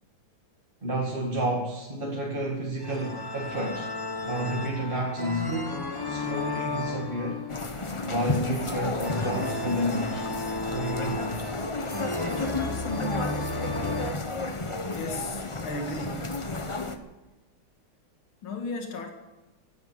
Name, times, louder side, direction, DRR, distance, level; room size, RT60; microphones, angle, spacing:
voice 1, 0.8-3.9 4.2-7.4 8.0-10.3 10.7-11.6, right 1 dB, 25° right, -3 dB, 2.0 m, -31 dB
sound 1, 2.8-14.1, left 2 dB, 10° left, 1.2 m, -34 dB
sound 2, 7.5-17.0, left 2 dB, 45° left, 0.3 m, -32 dB
voice 2, 14.9-16.3 18.4-19.1, left 2 dB, 70° left, 4 dB, 2.7 m, -35 dB
16.0 x 9.5 x 9.4 m, 1.1 s
omnidirectional pair, 2.4 m